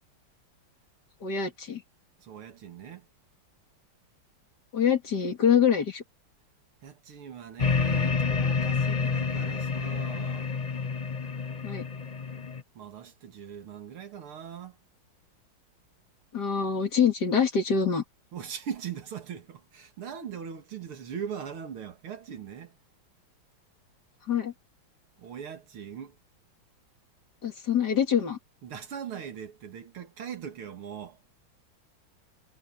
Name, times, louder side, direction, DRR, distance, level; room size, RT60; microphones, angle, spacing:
voice 1, 1.2-1.8 4.7-6.0 11.6-11.8 16.3-18.0 24.3-24.5 27.4-28.4, left 7 dB, 50° left, 2.8 m, -25 dB
voice 2, 2.2-3.1 6.8-10.5 12.8-14.8 18.3-22.7 25.2-26.1 28.6-31.2, right 8 dB, 85° right, 2.8 m, -40 dB
sound 1, 7.6-12.6, left 5 dB, 80° left, 0.3 m, -28 dB
omnidirectional pair, 2.3 m